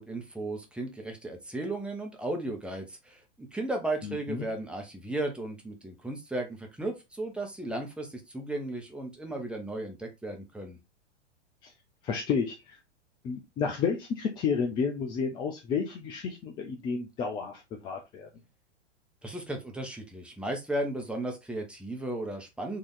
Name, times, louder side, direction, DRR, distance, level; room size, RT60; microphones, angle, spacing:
voice 1, 0.0-10.8 19.2-22.8, right 1 dB, 5° right, 2 dB, 1.0 m, -35 dB
voice 2, 12.0-12.8 13.2-18.3, left 6 dB, 15° left, 2 dB, 0.4 m, -31 dB
4.6 x 2.8 x 3.7 m, 0.23 s
figure-of-eight pair, 100°, 37 cm